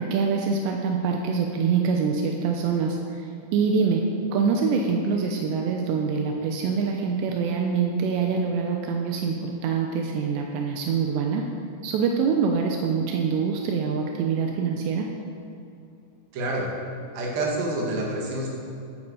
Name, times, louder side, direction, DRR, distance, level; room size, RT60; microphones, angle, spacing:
voice 1, 0.0-3.3 3.5-4.0 4.3-11.4 11.8-15.1, right 5 dB, 80° right, 1 dB, 2.6 m, -25 dB
voice 2, 16.3-16.7 17.1-18.5, right 2 dB, 55° right, -2 dB, 3.2 m, -27 dB
14.0 x 9.8 x 4.9 m, 2.7 s
omnidirectional pair, 5.8 m